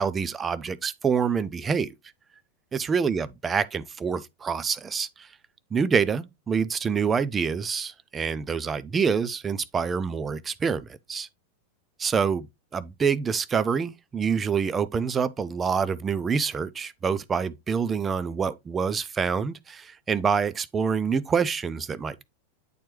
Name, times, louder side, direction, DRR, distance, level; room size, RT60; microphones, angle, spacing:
voice 1, 0.0-1.9 2.7-5.3 5.7-11.3 12.0-12.5 12.7-22.2, right 6 dB, 20° right, 0.5 m, -26 dB
8.4 x 4.4 x 3.1 m
figure-of-eight pair, 90°, 0 cm